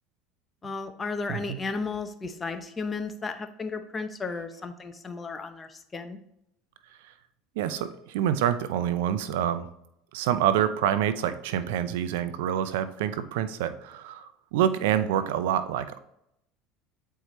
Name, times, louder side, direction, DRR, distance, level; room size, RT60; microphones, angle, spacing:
voice 1, 0.6-6.2, left 4 dB, 20° left, 7 dB, 0.7 m, -34 dB
voice 2, 7.6-9.7 10.1-16.0, right 10 dB, 85° right, 12 dB, 0.5 m, -27 dB
8.0 x 4.6 x 3.0 m, 0.79 s
supercardioid pair, 100°, 0 cm